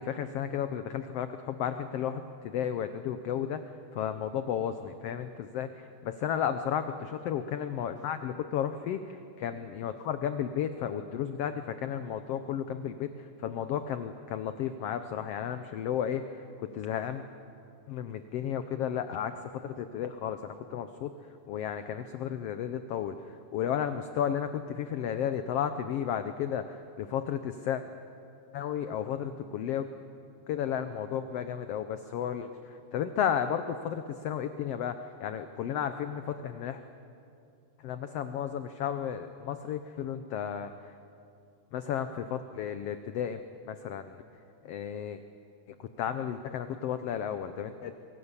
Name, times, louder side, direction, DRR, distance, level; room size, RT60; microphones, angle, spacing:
voice 1, 0.0-5.7 6.0-17.2 17.9-21.1 21.5-27.8 28.5-29.9 30.5-36.8 37.8-40.9 41.7-43.4 43.7-44.2 44.6-45.2 45.8-47.9, left 9 dB, 75° left, 10 dB, 1.4 m, -33 dB
23.5 x 17.0 x 8.2 m, 2.6 s
omnidirectional pair, 3.6 m